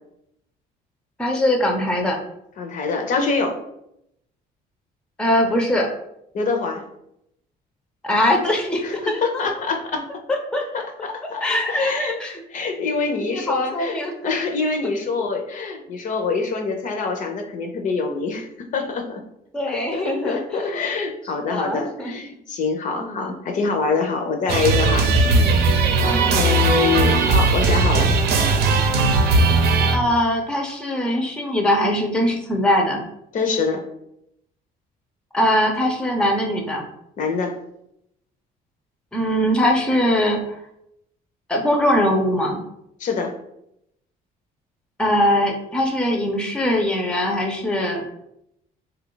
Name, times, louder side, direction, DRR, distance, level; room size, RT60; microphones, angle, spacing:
voice 1, 1.2-2.2 5.2-5.9 8.0-9.4 10.3-10.6 11.4-12.4 13.3-14.1 19.5-20.8 21.4-22.1 23.0-23.3 25.2-25.7 26.1-26.4 29.9-33.0 35.3-36.8 39.1-40.6 41.5-42.6 45.0-48.0, left 1 dB, 5° left, 2 dB, 0.5 m, -21 dB
voice 2, 2.6-3.6 6.3-6.8 8.8-10.1 10.7-12.1 12.5-19.2 19.7-25.4 26.0-28.1 33.3-33.8 37.2-37.6 43.0-43.3, left 4 dB, 50° left, 4 dB, 0.6 m, -25 dB
sound 1, 24.5-30.0, right 3 dB, 75° right, 0.6 m, -18 dB
3.2 x 2.3 x 3.8 m, 0.79 s
cardioid pair, 110°, 17 cm